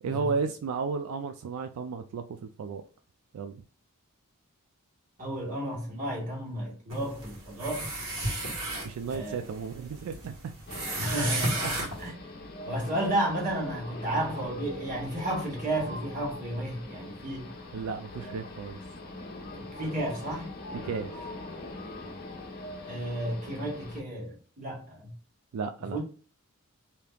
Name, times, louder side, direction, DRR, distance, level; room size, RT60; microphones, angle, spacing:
voice 1, 0.0-2.8 3.3-3.6 8.8-10.5 11.6-11.7 17.7-18.8 20.8-21.2 25.5-26.0, right 5 dB, 85° right, 0.3 m, -34 dB
voice 2, 5.2-7.9 9.1-9.4 11.0-12.1 12.6-17.6 19.5-20.5 22.8-25.1 25.9-26.0, right 1 dB, 40° right, 1.6 m, -32 dB
sound 1, 6.9-12.1, right 1 dB, 60° right, 1.5 m, -34 dB
sound 2, 10.7-24.0, left 2 dB, 45° left, 0.7 m, -42 dB
3.3 x 2.8 x 2.3 m
head